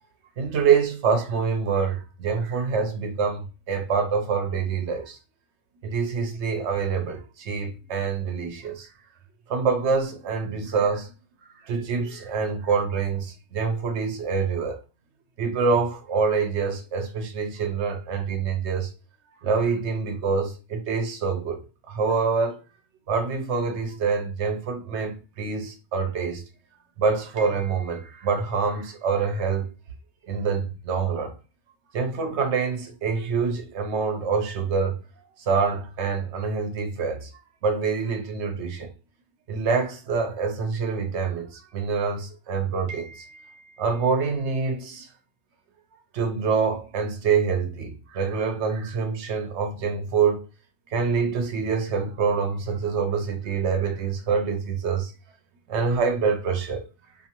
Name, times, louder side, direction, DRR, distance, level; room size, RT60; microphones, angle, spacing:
voice 1, 0.4-5.2 5.8-8.9 9.5-11.1 11.6-14.8 15.4-18.9 19.4-22.6 23.1-26.4 27.0-29.7 30.3-31.3 31.9-35.0 35.5-37.3 37.6-38.9 39.5-45.1 46.1-50.4 50.9-55.1 55.7-56.8, right 5 dB, 80° right, 0.9 m, -26 dB
2.6 x 2.5 x 2.9 m
omnidirectional pair, 1.1 m